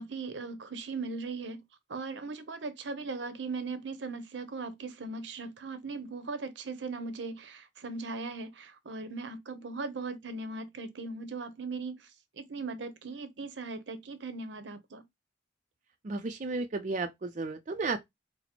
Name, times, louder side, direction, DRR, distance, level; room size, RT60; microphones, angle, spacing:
voice 1, 0.0-1.6 1.9-15.0, right 3 dB, 75° right, 0.7 m, -39 dB
voice 2, 16.0-18.0, right 3 dB, 40° right, 0.5 m, -33 dB
4.1 x 2.0 x 4.3 m
head